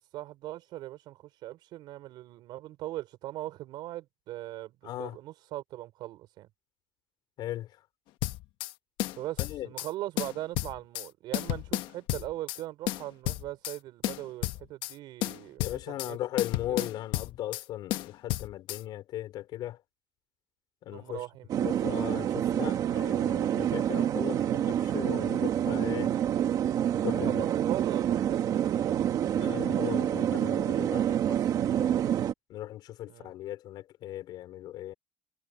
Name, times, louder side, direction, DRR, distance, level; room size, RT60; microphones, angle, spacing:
voice 1, 0.1-6.5 9.2-16.2 16.7-16.9 20.9-21.6 27.4-29.1 33.1-33.3, right 15 dB, 70° right, 5.6 m, -40 dB
voice 2, 4.8-5.2 7.4-7.7 9.4-9.7 15.6-19.8 20.8-21.3 21.6-26.1 27.0-27.5 29.3-31.4 31.7-32.0 32.5-34.9, left 13 dB, 65° left, 4.3 m, -37 dB
sound 1, 8.2-8.7 9.0-9.9 10.2-11.1 11.3-12.6 12.9-13.8 14.0-14.9 15.2-16.1 16.4-17.6 17.9-18.8, left 16 dB, 80° left, 1.2 m, -32 dB
sound 2, 21.5-32.3, right 10 dB, 50° right, 1.8 m, -27 dB
cardioid pair, 150°, 8 cm